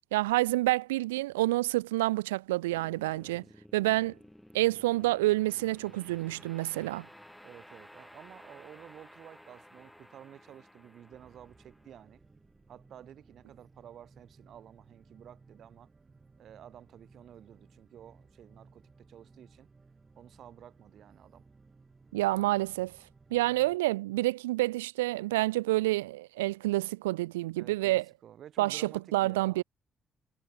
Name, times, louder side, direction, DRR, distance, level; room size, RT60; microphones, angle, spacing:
voice 1, 0.1-3.4 3.7-4.1 4.5-7.1 22.1-23.0 23.3-28.0 28.6-29.6, right 18 dB, 80° right, 0.3 m, -28 dB
sound 1, 2.7-13.9, equal, 5° left, 2.7 m, -55 dB
voice 2, 7.4-12.2 12.7-15.9 16.4-19.7 20.2-21.5 27.6-29.6, right 10 dB, 55° right, 1.7 m, -52 dB
sound 2, 11.1-23.8, right 4 dB, 30° right, 2.4 m, -60 dB
figure-of-eight pair, 45°, 0 cm